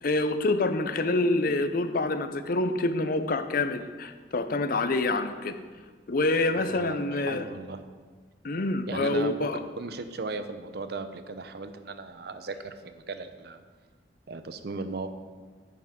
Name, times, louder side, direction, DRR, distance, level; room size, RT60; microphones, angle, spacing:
voice 1, 0.0-5.5 6.1-7.4 8.4-9.6, left 2 dB, 50° left, 9 dB, 0.5 m, -26 dB
voice 2, 6.6-7.8 8.9-9.5 9.8-13.6 14.3-15.1, right 3 dB, 60° right, 9 dB, 0.6 m, -37 dB
9.2 x 8.2 x 3.7 m, 1.5 s
head